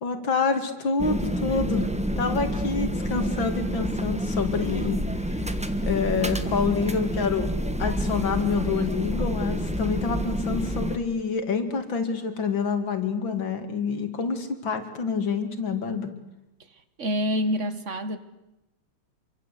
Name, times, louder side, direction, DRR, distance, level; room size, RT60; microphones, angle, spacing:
voice 1, 0.0-1.9 2.2-5.5 5.8-7.5 7.8-16.1, left 5 dB, 60° left, 3.0 m, -27 dB
sound 1, 1.0-11.0, equal, 5° right, 1.1 m, -28 dB
voice 2, 17.0-18.2, equal, 35° right, 1.7 m, -26 dB
27.0 x 24.5 x 8.4 m
omnidirectional pair, 2.4 m